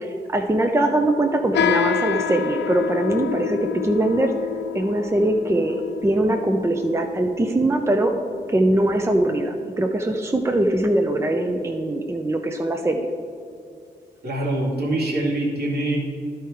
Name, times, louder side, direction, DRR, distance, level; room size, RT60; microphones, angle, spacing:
voice 1, 0.0-4.3 4.7-8.1 8.5-13.1, right 1 dB, 15° right, 4 dB, 0.6 m, -22 dB
sound 1, 1.5-9.3, left 9 dB, 80° left, 0.5 m, -28 dB
voice 2, 14.2-16.0, right 1 dB, 65° right, -4 dB, 2.2 m, -24 dB
11.0 x 4.6 x 4.7 m, 2.5 s
cardioid pair, 50°, 18 cm